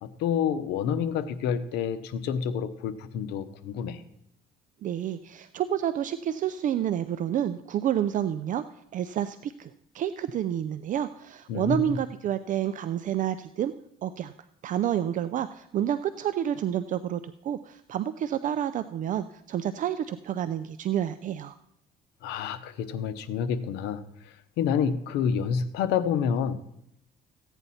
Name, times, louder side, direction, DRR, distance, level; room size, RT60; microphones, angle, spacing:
voice 1, 0.0-4.0 11.5-12.0 22.2-26.6, left 7 dB, 90° left, 11 dB, 0.9 m, -28 dB
voice 2, 4.8-8.6 8.9-13.7 14.0-14.3 14.6-21.6, right 10 dB, 50° right, 11 dB, 0.5 m, -29 dB
15.0 x 9.1 x 4.2 m, 0.78 s
cardioid pair, 110°, 17 cm